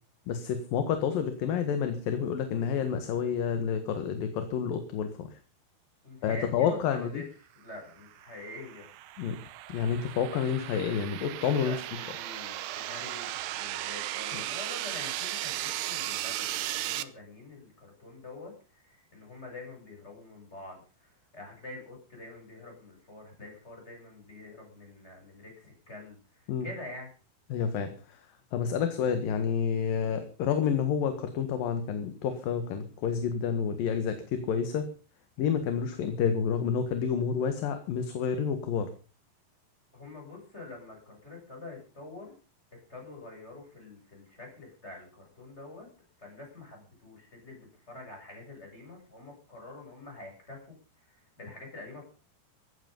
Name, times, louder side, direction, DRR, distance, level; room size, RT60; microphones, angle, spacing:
voice 1, 0.3-5.3 6.2-7.2 9.2-9.4 9.7-11.8 26.5-26.7 27.5-28.2 28.5-34.8 35.4-38.9, left 7 dB, 60° left, 8 dB, 3.1 m, -29 dB
voice 2, 6.0-7.3 7.5-8.9 11.6-27.1 39.9-42.3 42.9-45.9 46.2-50.6 51.1-52.0, left 2 dB, 15° left, 0 dB, 8.0 m, -46 dB
sound 1, 8.1-17.0, right 14 dB, 75° right, 2.8 m, -36 dB
16.0 x 14.5 x 5.5 m, 0.37 s
omnidirectional pair, 4.9 m